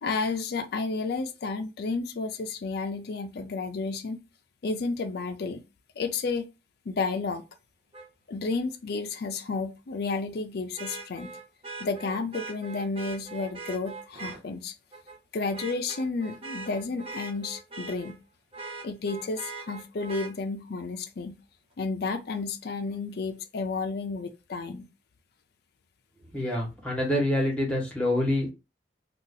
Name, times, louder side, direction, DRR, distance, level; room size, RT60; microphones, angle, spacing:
voice 1, 0.0-4.2 4.6-5.6 6.0-6.4 6.9-7.4 8.3-11.3 11.8-14.7 15.3-18.2 18.8-21.4 21.8-24.9, left 4 dB, 60° left, 0.4 m, -31 dB
Vehicle horn car horn honking, 7.9-8.1 10.8-14.4 14.9-15.2 15.5-18.2 18.5-20.3 22.1-22.2, right 3 dB, 30° right, 0.8 m, -41 dB
voice 2, 26.3-28.5, left 1 dB, 5° left, 1.2 m, -26 dB
2.7 x 2.4 x 3.8 m
head